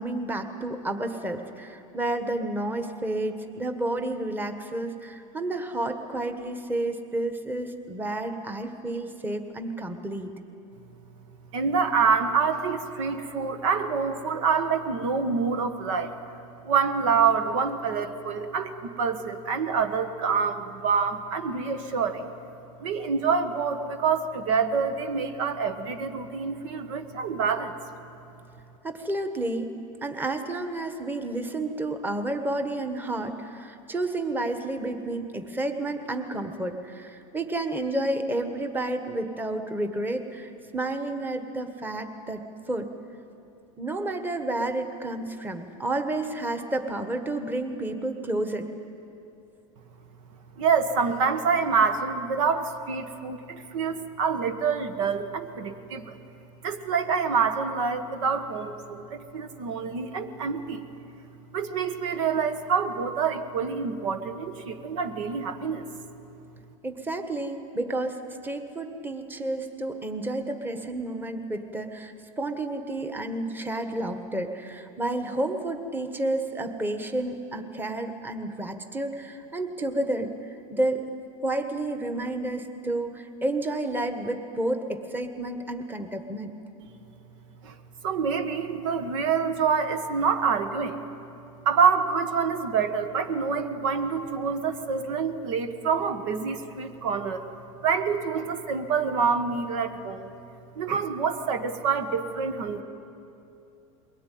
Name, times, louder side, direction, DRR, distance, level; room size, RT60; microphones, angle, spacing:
voice 1, 0.0-10.3 28.8-29.7 30.0-42.9 43.8-48.7 66.8-81.1 81.4-86.5, right 2 dB, 10° right, 6 dB, 1.4 m, -30 dB
voice 2, 11.5-16.1 16.6-22.3 22.8-27.8 50.6-56.2 56.6-60.8 61.5-65.9 87.6-87.7 88.0-91.1 91.6-97.4 97.8-100.3 100.7-102.8, right 5 dB, 75° right, 8 dB, 1.5 m, -26 dB
22.5 x 17.5 x 9.3 m, 2.7 s
supercardioid pair, 125°, 17 cm